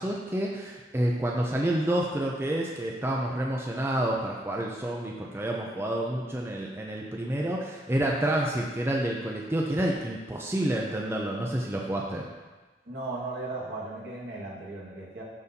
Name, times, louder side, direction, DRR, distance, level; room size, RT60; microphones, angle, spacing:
voice 1, 0.0-12.3, right 1 dB, 15° right, -2 dB, 0.5 m, -29 dB
voice 2, 12.9-15.2, right 2 dB, 65° right, -5 dB, 1.7 m, -36 dB
12.0 x 4.1 x 2.7 m, 1.3 s
head